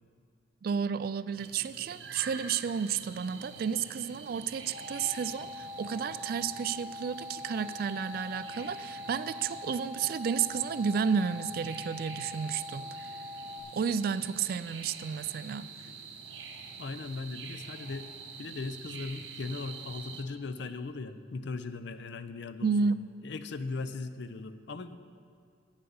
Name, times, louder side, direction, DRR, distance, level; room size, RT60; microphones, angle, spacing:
voice 1, 0.6-13.1 13.7-15.7 22.6-23.0, right 6 dB, 50° right, 15 dB, 0.3 m, -32 dB
sound 1, 1.4-20.2, right 5 dB, 80° right, 1.0 m, -47 dB
sound 2, 4.7-13.6, left 2 dB, 45° left, 1.8 m, -43 dB
voice 2, 16.8-18.1 18.4-22.9 23.2-25.0, left 3 dB, 65° left, 11 dB, 0.5 m, -38 dB
9.0 x 7.4 x 7.0 m, 2.5 s
head